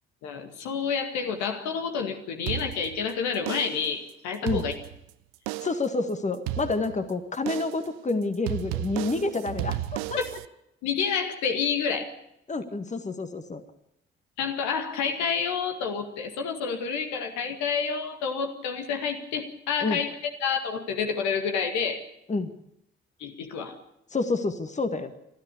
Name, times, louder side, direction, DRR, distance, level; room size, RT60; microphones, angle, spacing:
voice 1, 0.2-4.7 10.2-10.3 10.8-12.1 14.4-20.1 20.4-22.0 23.2-23.7, left 6 dB, 65° left, 5 dB, 2.2 m, -29 dB
sound 1, 2.5-3.1 3.5-4.0 4.3-5.1 5.5-5.9 6.5-7.1 7.5-7.9 8.5-10.5, right 15 dB, 70° right, 0.7 m, -34 dB
voice 2, 5.6-9.8 10.1-10.2 12.5-13.6 19.8-20.0 22.3-22.5 24.1-25.1, left 3 dB, 25° left, 9 dB, 1.8 m, -28 dB
24.5 x 13.5 x 8.4 m, 0.81 s
figure-of-eight pair, 45°, 31 cm